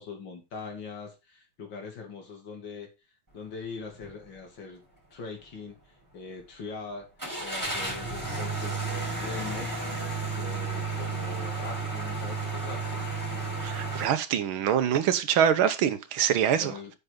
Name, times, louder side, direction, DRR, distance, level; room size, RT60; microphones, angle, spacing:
voice 1, 0.0-2.9 3.3-4.8 5.1-5.8 6.1-7.1 7.4-9.8 10.4-13.1 16.5-16.9, left 4 dB, 60° left, 3.1 m, -41 dB
sound 1, 3.9-4.2 4.6-4.7 7.2-14.0, right 3 dB, 10° right, 5.2 m, -32 dB
voice 2, 13.6-16.7, right 9 dB, 85° right, 1.8 m, -24 dB
9.4 x 6.9 x 3.8 m
omnidirectional pair, 2.3 m